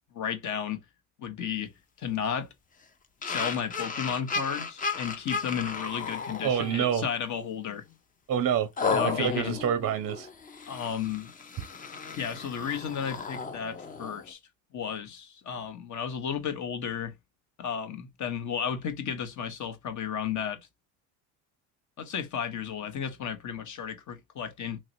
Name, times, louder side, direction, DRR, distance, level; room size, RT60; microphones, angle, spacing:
voice 1, 0.1-0.8 1.2-1.7 2.0-2.5 3.2-7.8 8.9-9.6 10.7-11.3 12.2-14.4 14.7-17.1 17.6-20.6 22.0-24.8, left 8 dB, 45° left, 0.9 m, -33 dB
sound 1, 3.2-7.1 7.5-7.7 8.8-14.3, left 4 dB, 20° left, 0.5 m, -34 dB
voice 2, 6.4-7.1 8.3-8.7 9.0-10.3, right 8 dB, 35° right, 0.6 m, -27 dB
3.0 x 2.8 x 2.6 m
supercardioid pair, 80°, 42 cm